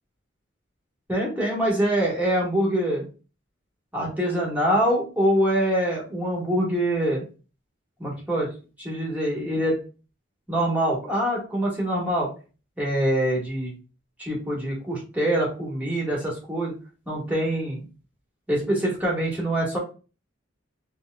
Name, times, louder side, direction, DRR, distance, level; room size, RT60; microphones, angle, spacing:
voice 1, 1.1-3.1 3.9-7.2 8.0-8.5 8.8-9.8 10.5-12.3 12.8-13.7 14.2-16.7 17.0-17.8 18.5-19.8, right 1 dB, 10° right, -4 dB, 1.1 m, -24 dB
4.3 x 2.2 x 2.2 m, 0.34 s
head